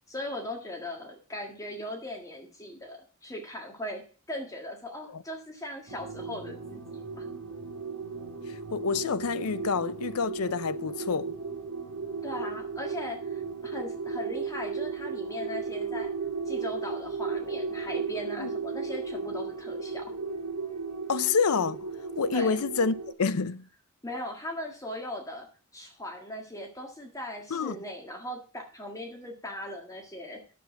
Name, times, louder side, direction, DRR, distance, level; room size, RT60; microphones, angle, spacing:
voice 1, 0.1-4.0 4.3-6.8 7.2-7.3 12.2-16.1 16.5-20.1 22.3-22.6 24.0-25.5 25.7-30.4, left 1 dB, 15° left, 1.7 m, -39 dB
sound 1, 5.9-23.1, right 4 dB, 85° right, 2.1 m, -35 dB
voice 2, 8.5-11.3 18.4-18.5 21.1-21.9 22.2-23.6 27.5-27.8, left 5 dB, 80° left, 0.6 m, -28 dB
10.0 x 7.2 x 5.6 m
head